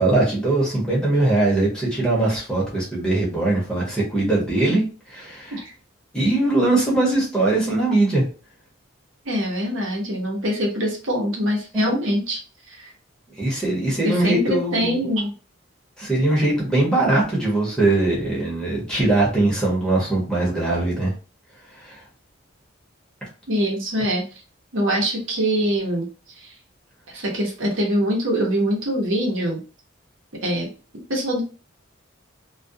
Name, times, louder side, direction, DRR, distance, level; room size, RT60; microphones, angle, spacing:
voice 1, 0.0-5.6 6.1-8.2 11.7-11.9 13.4-15.0 16.0-21.1 21.7-22.0, right 2 dB, 5° left, -5 dB, 0.9 m, -21 dB
voice 2, 9.2-12.4 12.7-12.9 14.0-15.3 23.5-24.2 24.7-26.5 27.1-29.6 30.4-30.7 31.1-31.4, equal, 75° right, -1 dB, 0.9 m, -24 dB
2.4 x 2.3 x 2.6 m, 0.35 s
head